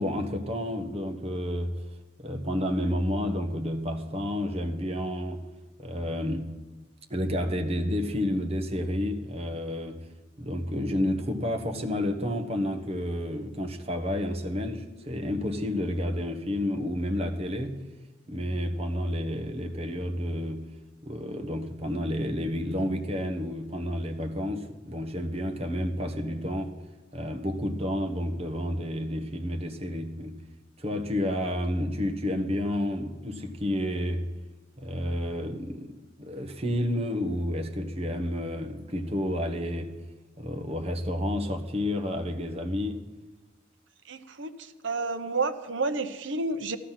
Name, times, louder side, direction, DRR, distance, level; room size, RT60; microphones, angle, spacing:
voice 1, 0.0-1.8 2.2-5.4 5.8-6.6 7.1-10.1 10.4-17.8 18.3-20.7 21.0-26.7 27.1-30.4 30.8-34.3 34.8-40.0 40.4-43.0, left 1 dB, 30° right, 1.3 m, -30 dB
voice 2, 44.1-46.8, right 3 dB, 65° right, 0.9 m, -30 dB
15.5 x 12.5 x 5.9 m
head